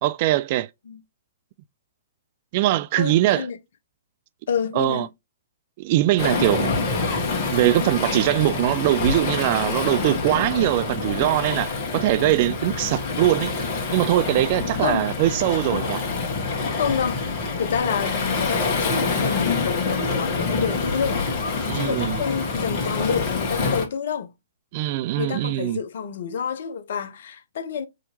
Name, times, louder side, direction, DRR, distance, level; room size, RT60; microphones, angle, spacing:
voice 1, 0.0-0.7 2.5-3.5 4.8-5.1 5.8-6.9 7.5-13.5 13.9-16.0 21.6-22.2 24.7-25.8, right 15 dB, 40° right, 0.3 m, -22 dB
voice 2, 3.0-3.6 4.5-5.1 14.8-15.1 16.8-21.3 21.7-24.3 25.2-27.9, left 7 dB, 55° left, 0.7 m, -28 dB
Waves surf, 6.2-23.9, left 4 dB, 35° left, 1.4 m, -26 dB
5.1 x 2.8 x 2.8 m
figure-of-eight pair, 115°, 0 cm